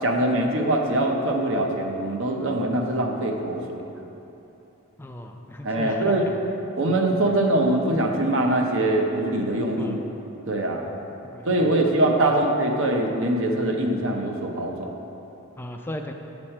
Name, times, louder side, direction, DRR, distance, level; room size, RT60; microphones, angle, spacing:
voice 1, 0.0-3.8 5.6-6.3 6.7-10.0 10.5-10.8 11.4-14.9, right 1 dB, 60° right, 2 dB, 0.7 m, -23 dB
voice 2, 5.0-6.1 6.9-7.0 7.3-7.4 9.8-10.0 11.2-12.0 12.3-12.4 15.6-16.1, left 1 dB, 10° left, 3 dB, 0.3 m, -36 dB
6.6 x 6.1 x 4.3 m, 3.0 s
head